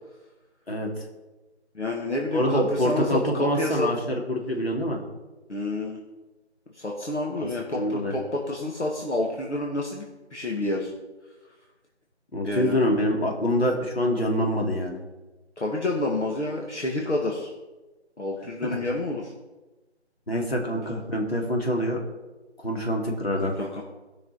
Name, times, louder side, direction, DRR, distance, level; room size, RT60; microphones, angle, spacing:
voice 1, 1.7-3.9 5.5-6.0 6.7-10.9 12.4-12.8 15.6-17.5 18.2-19.3 23.6-23.8, left 2 dB, 80° left, -1 dB, 1.8 m, -29 dB
voice 2, 2.3-5.0 7.7-8.1 12.3-15.0 20.3-22.0 22.6-23.5, left 1 dB, 60° left, 0 dB, 2.5 m, -25 dB
15.0 x 6.0 x 4.1 m, 1.1 s
figure-of-eight pair, 175°, 34 cm